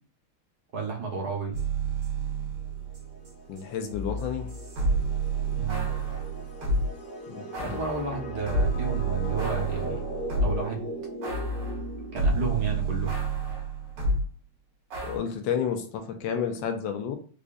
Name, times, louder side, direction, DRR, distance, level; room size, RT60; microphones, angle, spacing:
voice 1, 0.7-1.6 5.6-5.9 7.6-10.1 10.4-10.9 12.1-13.1, right 4 dB, 60° right, 1.2 m, -32 dB
sound 1, 1.5-6.9 7.5-10.7 11.2-14.3 14.9-15.2, right 3 dB, 75° right, 2.1 m, -29 dB
sound 2, 2.7-13.2, right 1 dB, 40° left, 0.9 m, -39 dB
voice 2, 3.5-4.6 7.3-7.8 15.0-17.2, left 7 dB, 75° left, 1.2 m, -31 dB
5.0 x 2.5 x 2.3 m
omnidirectional pair, 2.4 m